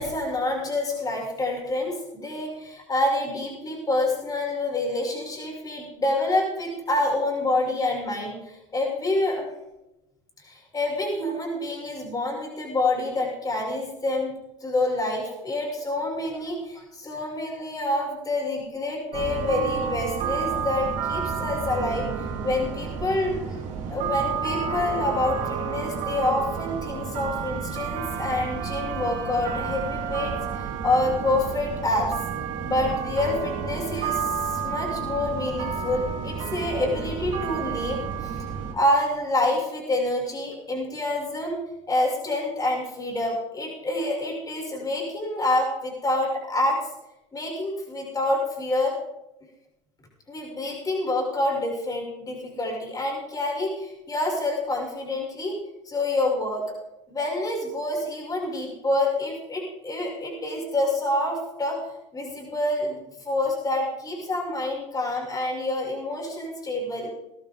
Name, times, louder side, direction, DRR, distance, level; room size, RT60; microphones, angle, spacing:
voice 1, 0.0-9.5 10.4-14.3 14.6-22.1 22.4-23.6 23.9-32.2 32.6-38.5 38.7-41.6 41.9-46.8 47.3-48.9 50.3-55.6 55.9-56.7 57.1-61.8 62.1-67.1, left 2 dB, 20° left, -1 dB, 6.9 m, -27 dB
sound 1, 19.1-38.7, right 7 dB, 50° right, 3.8 m, -30 dB
22.0 x 12.0 x 3.9 m, 0.94 s
hypercardioid pair, 95°, 16 cm